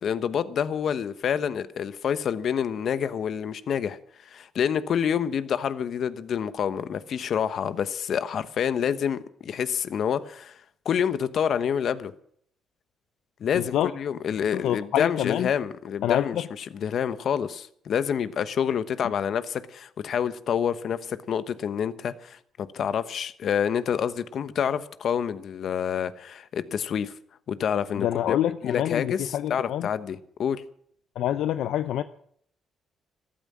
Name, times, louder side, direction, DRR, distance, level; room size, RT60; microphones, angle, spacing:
voice 1, 0.0-10.6 10.8-12.1 13.4-27.1 27.5-28.4 28.6-30.6, left 8 dB, 60° left, 1.1 m, -28 dB
voice 2, 13.5-13.9 14.5-15.5 16.0-16.4 27.9-29.9 31.2-32.0, left 11 dB, 80° left, 0.6 m, -26 dB
14.0 x 13.0 x 7.5 m
cardioid pair, 90°, 0 cm